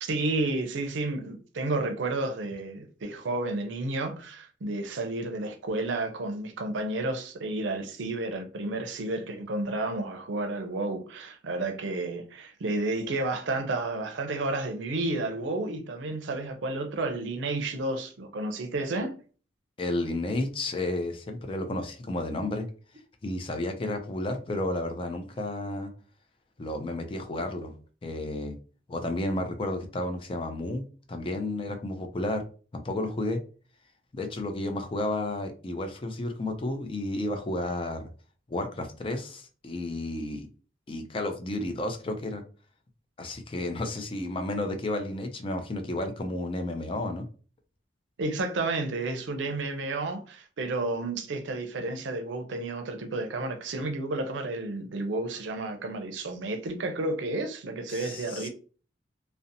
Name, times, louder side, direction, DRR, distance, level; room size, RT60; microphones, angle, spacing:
voice 1, 0.0-19.2 48.2-58.5, right 2 dB, 80° right, 0.5 m, -31 dB
voice 2, 19.8-22.7 23.2-25.9 26.6-27.7 28.0-28.6 28.9-32.4 32.7-33.4 34.1-38.1 38.5-40.5 40.9-42.4 43.2-47.3 57.9-58.5, left 1 dB, 30° left, 0.4 m, -32 dB
2.7 x 2.0 x 2.5 m
head